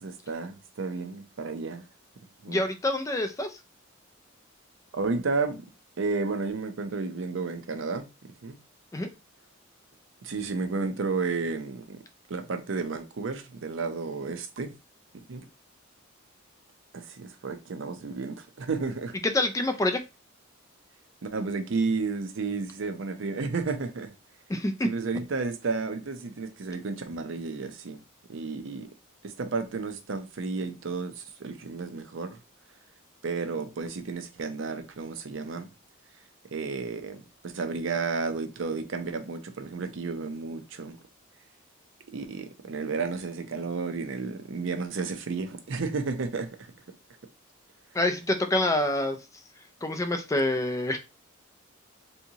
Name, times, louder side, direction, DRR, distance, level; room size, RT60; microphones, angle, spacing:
voice 1, 0.0-1.8 2.4-2.6 4.9-5.6 6.0-8.0 8.4-8.6 10.2-12.0 12.3-14.7 15.1-15.5 16.9-19.2 21.2-24.1 24.8-28.0 28.3-28.9 29.2-32.4 33.2-35.7 36.5-41.0 42.1-46.5, right 4 dB, 65° right, 0.5 m, -32 dB
voice 2, 2.5-3.5 8.9-9.1 19.2-20.0 24.5-24.9 47.9-49.2 49.8-51.0, left 1 dB, 15° left, 0.3 m, -26 dB
3.5 x 2.8 x 2.7 m
head